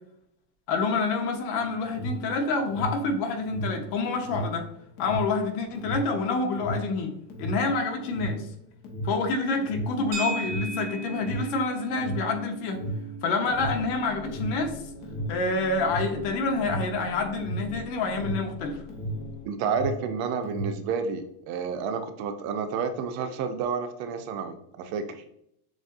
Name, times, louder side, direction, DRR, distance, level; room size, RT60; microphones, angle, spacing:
voice 1, 0.7-4.7 5.0-8.5 9.0-12.8 13.2-14.8 15.3-18.8, left 3 dB, 55° left, 3 dB, 1.1 m, -28 dB
Alarm, 1.7-19.3 19.6-20.9, right 1 dB, 40° left, 1.2 m, -34 dB
sound 1, 10.1-18.5, right 4 dB, 75° right, 1.2 m, -40 dB
sound 2, 13.5-19.5, left 6 dB, 5° left, 0.5 m, -44 dB
voice 2, 19.4-25.2, right 6 dB, 55° right, 8 dB, 0.5 m, -30 dB
7.1 x 2.5 x 2.5 m, 0.75 s
cardioid pair, 160°, 48 cm